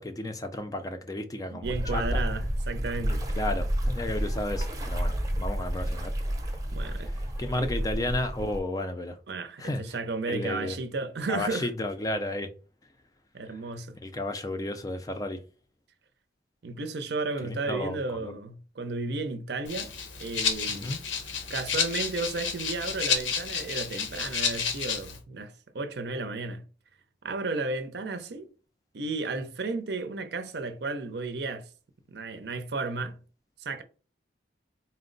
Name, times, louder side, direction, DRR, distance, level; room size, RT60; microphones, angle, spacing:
voice 1, 0.0-2.2 3.3-6.1 7.0-7.1 7.4-9.2 9.6-9.8 10.3-10.8 11.3-12.5 13.5-13.6 14.0-15.4 17.4-18.3 20.7-21.0, left 1 dB, 20° left, 0.4 m, -33 dB
voice 2, 1.5-3.3 6.7-7.1 7.6-7.7 9.3-11.7 13.3-14.0 16.6-19.9 20.2-21.0 21.5-26.6 27.2-28.5 28.9-31.7 32.1-33.2 33.6-33.8, right 3 dB, 60° right, 0.6 m, -33 dB
sound 1, 1.6-8.6, equal, 20° right, 0.6 m, -30 dB
Rattle (instrument), 19.7-25.2, left 6 dB, 85° left, 0.7 m, -31 dB
4.3 x 2.0 x 3.8 m
head